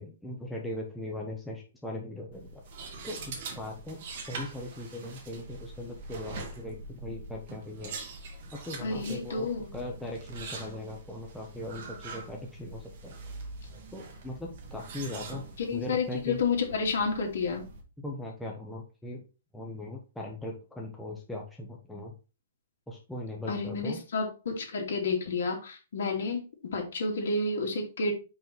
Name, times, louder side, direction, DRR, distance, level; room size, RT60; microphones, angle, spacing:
voice 1, 0.0-2.6 3.0-4.0 4.3-7.9 8.5-13.2 13.9-15.4 15.7-16.4 18.0-19.2 19.5-22.1 22.9-24.0, left 1 dB, 5° left, -1 dB, 0.7 m, -39 dB
sound 1, 2.3-17.8, right 3 dB, 35° right, 1.6 m, -43 dB
voice 2, 8.8-9.7 15.7-17.7 23.5-26.4 26.7-28.1, left 4 dB, 60° left, 1 dB, 2.8 m, -30 dB
5.4 x 5.4 x 4.4 m, 0.32 s
hypercardioid pair, 180°, 0 cm